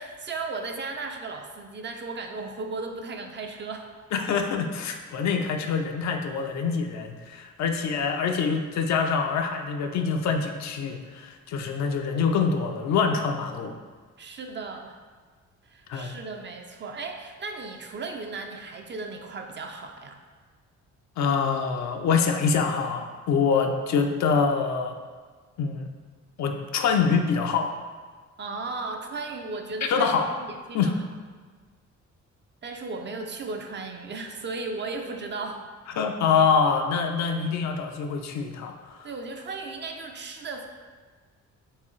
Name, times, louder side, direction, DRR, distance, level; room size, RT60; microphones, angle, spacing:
voice 1, 0.0-3.9 14.2-15.0 15.7-20.2 28.4-30.9 32.6-35.6 39.0-40.7, right 3 dB, 40° right, 4 dB, 0.5 m, -35 dB
voice 2, 4.1-13.8 15.9-16.2 21.2-25.0 25.6-25.9 26.4-27.7 29.9-30.3 30.7-31.0 35.9-39.1, left 5 dB, 65° left, 5 dB, 0.5 m, -25 dB
4.6 x 3.3 x 3.1 m, 1.5 s
cardioid pair, 90°, 30 cm